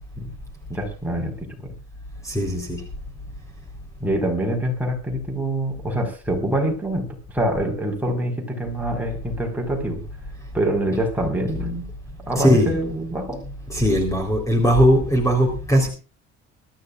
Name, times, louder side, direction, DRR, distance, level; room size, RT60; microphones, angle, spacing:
voice 1, 0.7-1.7 4.0-7.1 7.3-10.0 10.5-11.8 12.3-13.4, right 1 dB, 5° right, 2 dB, 4.9 m, -25 dB
voice 2, 2.2-2.8 11.8-11.9 12.2-12.8 13.7-15.9, equal, 10° left, 4 dB, 3.9 m, -19 dB
24.0 x 14.0 x 2.5 m, 0.34 s
cardioid pair, 155°, 29 cm